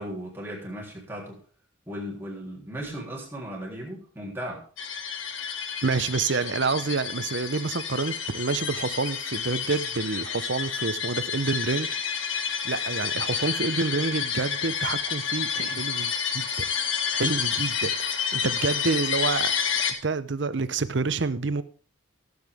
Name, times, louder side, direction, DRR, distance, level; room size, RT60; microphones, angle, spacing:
voice 1, 0.0-1.4 1.9-4.7, equal, 10° right, 3.5 m, -36 dB
sound 1, 4.8-19.9, left 7 dB, 85° left, 1.8 m, -29 dB
voice 2, 5.8-12.3 12.6-16.6 17.1-19.5 20.0-21.6, right 4 dB, 65° right, 0.8 m, -28 dB
17.0 x 8.0 x 3.6 m
head